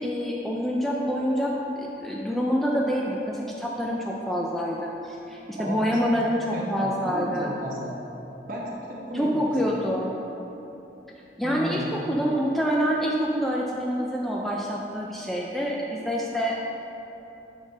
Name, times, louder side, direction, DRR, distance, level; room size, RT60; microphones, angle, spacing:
voice 1, 0.0-7.5 9.1-10.1 11.4-16.6, equal, ahead, -3 dB, 0.4 m, -26 dB
voice 2, 5.6-7.9 8.5-9.6 11.4-11.9, equal, 50° right, -3 dB, 1.1 m, -34 dB
5.1 x 5.0 x 5.3 m, 3.0 s
head